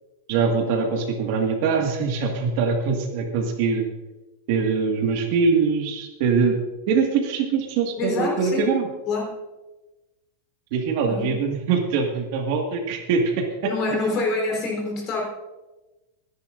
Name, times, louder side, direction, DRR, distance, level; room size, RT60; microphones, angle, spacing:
voice 1, 0.3-3.9 4.5-6.6 6.9-8.9 10.7-13.7, right 5 dB, 50° right, 2 dB, 1.8 m, -23 dB
voice 2, 8.0-8.7 9.1-9.2 11.1-11.3 13.6-15.2, left 2 dB, 30° left, 0 dB, 3.7 m, -26 dB
24.5 x 10.5 x 2.6 m, 1.1 s
supercardioid pair, 165°, 0 cm